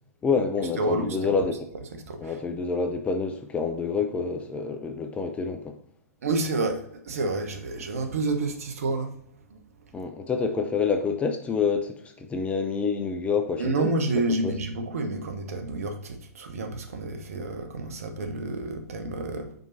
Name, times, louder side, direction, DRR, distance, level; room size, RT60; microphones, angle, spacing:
voice 1, 0.2-1.6 2.2-5.8 9.9-14.5, left 5 dB, 15° left, 0.6 m, -27 dB
voice 2, 0.8-1.4 1.9-2.4 6.2-9.2 9.5-9.9 13.6-19.5, right 2 dB, 60° right, 1.1 m, -29 dB
5.3 x 4.5 x 4.2 m
figure-of-eight pair, 115°, 9 cm